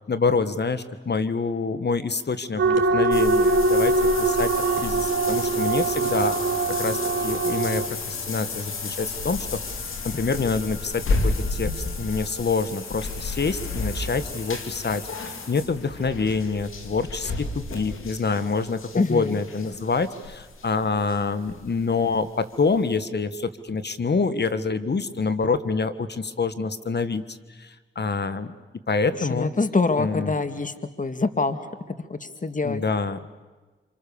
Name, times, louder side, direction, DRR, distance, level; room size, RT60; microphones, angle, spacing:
voice 1, 0.1-6.3 6.7-9.6 10.0-28.5 28.9-29.5 30.0-30.3 32.6-33.2, left 4 dB, 55° left, 12 dB, 1.5 m, -26 dB
sound 1, 2.6-7.9, right 3 dB, 65° right, 2.9 m, -22 dB
sound 2, 3.1-21.8 22.1-22.2 22.7-22.8, left 3 dB, 80° left, 2.6 m, -32 dB
voice 2, 18.9-19.4 29.3-31.6 32.1-32.8, left 3 dB, 40° left, 10 dB, 1.9 m, -25 dB
27.0 x 26.0 x 7.0 m, 1.3 s
cardioid pair, 45°, 21 cm